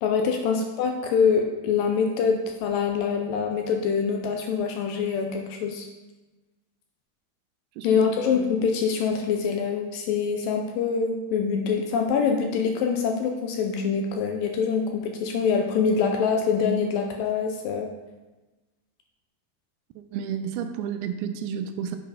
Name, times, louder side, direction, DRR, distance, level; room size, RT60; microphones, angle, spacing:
voice 1, 0.0-5.9 7.8-17.9, left 6 dB, 80° left, 3 dB, 2.1 m, -25 dB
voice 2, 7.8-8.3 20.1-22.0, right 8 dB, 80° right, 8 dB, 2.4 m, -31 dB
7.7 x 4.7 x 4.9 m, 1.1 s
omnidirectional pair, 4.5 m